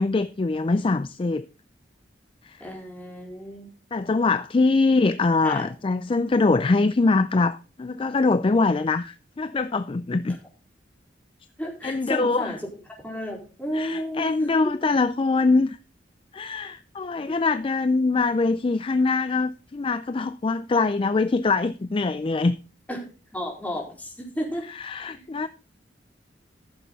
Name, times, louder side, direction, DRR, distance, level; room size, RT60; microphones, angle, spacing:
voice 1, 0.0-1.5 2.4-2.6 3.9-10.4 11.8-12.6 13.7-15.8 16.3-22.6 24.7-25.5, left 3 dB, 30° left, 0.4 m, -23 dB
voice 2, 2.6-3.7 5.4-5.7 11.6-12.6 13.0-14.5 17.3-17.4 22.9-23.0 23.3-24.6 25.1-25.2, equal, 10° left, 4.3 m, -32 dB
14.0 x 7.0 x 4.0 m
head